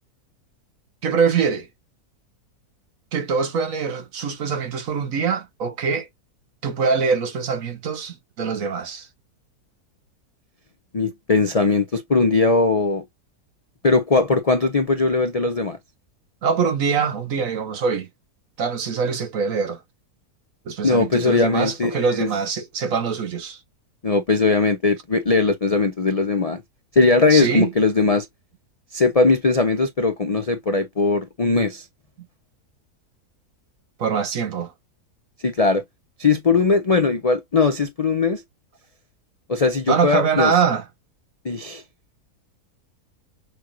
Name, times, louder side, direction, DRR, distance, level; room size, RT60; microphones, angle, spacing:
voice 1, 1.0-1.7 3.1-6.1 6.6-9.1 16.4-18.1 18.6-19.8 20.7-23.6 27.3-27.7 34.0-34.7 39.9-40.8, right 5 dB, 60° right, 1.4 m, -23 dB
voice 2, 10.9-13.0 13.8-15.8 20.8-22.3 24.0-26.6 26.9-28.3 28.9-31.8 35.4-35.8 36.2-38.4 39.5-40.5 41.4-41.8, left 3 dB, 45° left, 0.4 m, -19 dB
6.3 x 2.5 x 3.0 m
omnidirectional pair, 1.7 m